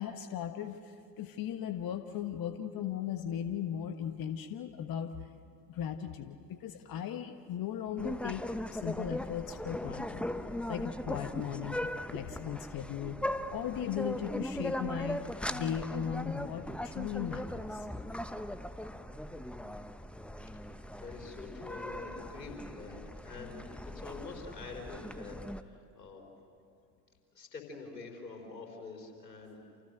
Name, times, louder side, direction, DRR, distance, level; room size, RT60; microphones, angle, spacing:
voice 1, 0.0-5.1 5.7-8.4 8.7-10.3 10.7-13.2 13.5-15.2 15.5-17.9, left 9 dB, 45° left, 8 dB, 1.4 m, -37 dB
sound 1, 8.0-25.6, left 1 dB, ahead, 1.1 m, -39 dB
voice 2, 21.0-26.2 27.3-29.6, left 4 dB, 90° left, 2 dB, 4.5 m, -46 dB
29.5 x 28.5 x 6.7 m, 2.6 s
hypercardioid pair, 65°, 48 cm